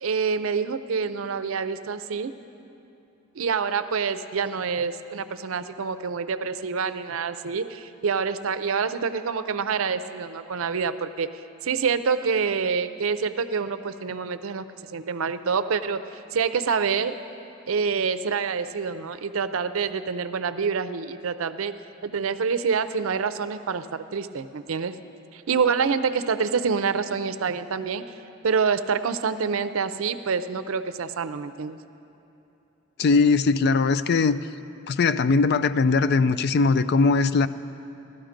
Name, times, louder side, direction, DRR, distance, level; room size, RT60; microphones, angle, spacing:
voice 1, 0.0-2.3 3.4-11.3 11.6-17.2 17.7-21.8 22.0-25.0 25.3-28.0 28.4-31.8, right 5 dB, 75° right, 12 dB, 0.5 m, -27 dB
voice 2, 33.0-34.4 34.9-37.5, left 4 dB, 50° left, 13 dB, 0.3 m, -20 dB
15.5 x 12.5 x 5.1 m, 2.9 s
head